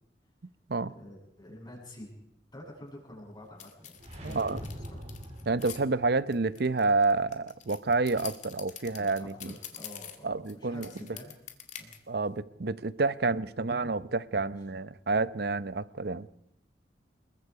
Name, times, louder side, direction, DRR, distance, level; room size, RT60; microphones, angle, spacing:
voice 1, 0.9-2.1 2.5-5.0 9.2-11.3 11.8-11.9 14.6-14.7, left 1 dB, 25° left, 7.5 m, -48 dB
sound 1, 3.6-5.8 6.3-10.5 10.8-12.0, left 9 dB, 45° left, 2.1 m, -45 dB
sound 2, 3.9-6.2, equal, 40° right, 4.0 m, -43 dB
voice 2, 4.2-4.6 5.5-9.5 10.2-10.9 12.1-16.3, right 3 dB, 65° right, 0.8 m, -29 dB
27.0 x 22.0 x 4.9 m
head